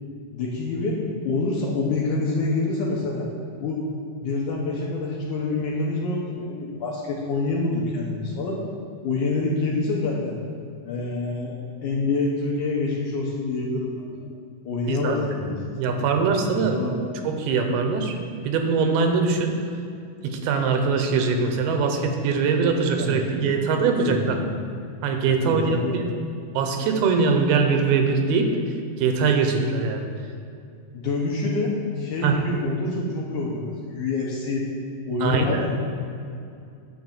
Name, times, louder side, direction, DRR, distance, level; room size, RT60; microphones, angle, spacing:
voice 1, 0.3-1.0 1.2-3.3 3.6-3.8 4.2-8.6 9.0-10.4 10.9-14.1 14.7-16.0 16.5-17.0 23.0-23.2 24.0-24.6 25.3-26.0 30.9-34.7 35.1-35.8, left 3 dB, 70° left, -3 dB, 2.0 m, -27 dB
voice 2, 15.8-16.8 17.2-18.1 18.4-19.5 20.2-24.4 25.0-26.0 26.6-28.5 29.0-30.1 32.2-32.4 35.2-35.6, right 5 dB, 85° right, 4 dB, 2.7 m, -22 dB
10.0 x 3.9 x 7.2 m, 2.4 s
omnidirectional pair, 4.4 m